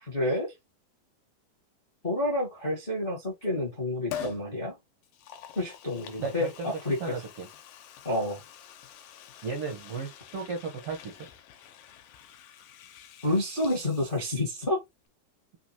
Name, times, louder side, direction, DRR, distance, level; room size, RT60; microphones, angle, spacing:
voice 1, 0.1-0.5 2.0-4.7 5.5-6.5 6.8-7.1 8.0-8.4 13.2-14.8, left 1 dB, 45° left, 0.7 m, -29 dB
Liquid, 4.1-4.5 5.0-14.7 15.0-15.1, left 9 dB, 80° left, 2.4 m, -46 dB
voice 2, 6.2-7.5 9.4-11.3, right 4 dB, 70° right, 1.4 m, -35 dB
5.9 x 2.4 x 2.9 m
omnidirectional pair, 4.1 m